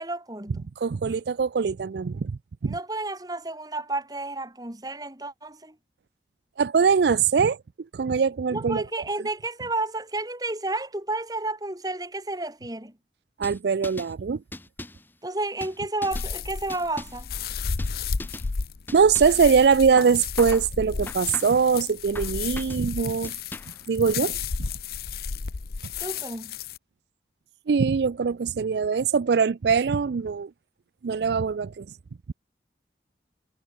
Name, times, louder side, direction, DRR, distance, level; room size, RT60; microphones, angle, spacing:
voice 1, 0.0-0.7 2.6-5.8 8.5-12.9 15.2-17.3 26.0-26.6, right 2 dB, 20° right, 2.5 m, -31 dB
voice 2, 0.8-2.7 6.6-7.6 7.9-8.8 13.4-14.4 18.9-23.3 23.9-24.7 27.7-30.5 31.0-31.9, right 5 dB, 70° right, 0.4 m, -22 dB
sound 1, 13.4-14.1 14.5-15.1 15.6-16.3 16.7-17.3 17.8-17.9 18.2-18.5 18.9-19.4 20.0-20.7 21.1-21.7 22.1-22.9 23.2-23.8, left 1 dB, 10° left, 1.0 m, -40 dB
sound 2, 16.1-26.8, left 5 dB, 60° left, 0.7 m, -32 dB
head